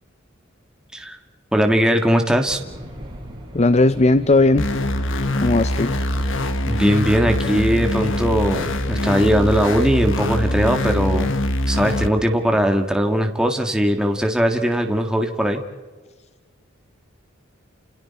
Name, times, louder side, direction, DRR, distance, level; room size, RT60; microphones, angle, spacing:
voice 1, 1.5-2.6 6.7-11.3 11.7-15.6, equal, 5° right, 3 dB, 1.8 m, -19 dB
sound 1, 2.5-9.9, equal, 25° right, 5.9 m, -37 dB
voice 2, 3.5-4.7 5.4-6.0, left 2 dB, 35° left, 13 dB, 0.6 m, -16 dB
sound 2, 4.6-12.1, left 1 dB, 65° left, 1.4 m, -23 dB
30.0 x 28.5 x 4.3 m, 1.3 s
head